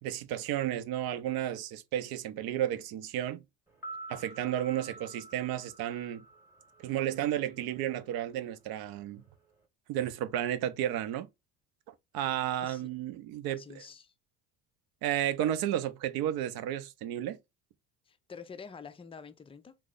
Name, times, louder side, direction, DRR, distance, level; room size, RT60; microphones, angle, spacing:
voice 1, 0.0-3.4 4.1-6.2 6.8-9.2 9.9-11.3 12.1-13.8 15.0-17.4, right 11 dB, 60° right, 0.6 m, -32 dB
sound 1, 3.7-7.8 8.1-8.2, right 2 dB, 5° right, 1.0 m, -48 dB
voice 2, 13.5-14.1 18.1-19.8, left 5 dB, 15° left, 0.4 m, -47 dB
3.0 x 2.1 x 3.7 m
hypercardioid pair, 65°, 42 cm